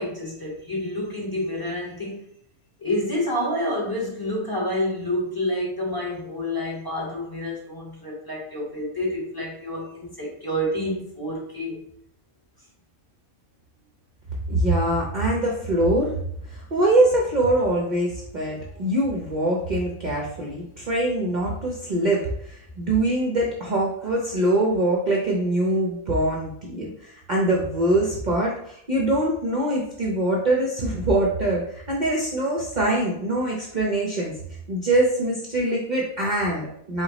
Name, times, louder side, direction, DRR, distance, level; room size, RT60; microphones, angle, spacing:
voice 1, 0.0-2.2 2.8-11.8, left 1 dB, 15° left, -5 dB, 1.3 m, -28 dB
voice 2, 14.5-16.1 16.5-34.3 34.7-37.0, right 1 dB, 45° right, -2 dB, 0.6 m, -23 dB
4.8 x 2.4 x 4.0 m, 0.71 s
omnidirectional pair, 1.5 m